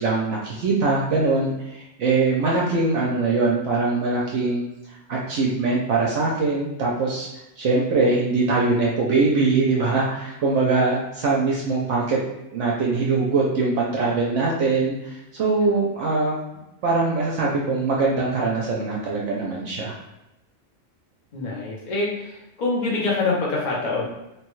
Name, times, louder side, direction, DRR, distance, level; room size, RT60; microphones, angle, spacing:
voice 1, 0.0-4.6 5.1-7.3 7.6-12.2 12.5-16.4 16.8-20.0, right 3 dB, 75° right, -4 dB, 0.9 m, -22 dB
voice 2, 21.3-24.1, left 3 dB, 40° left, -4 dB, 0.8 m, -25 dB
3.1 x 2.2 x 3.0 m, 0.93 s
omnidirectional pair, 1.3 m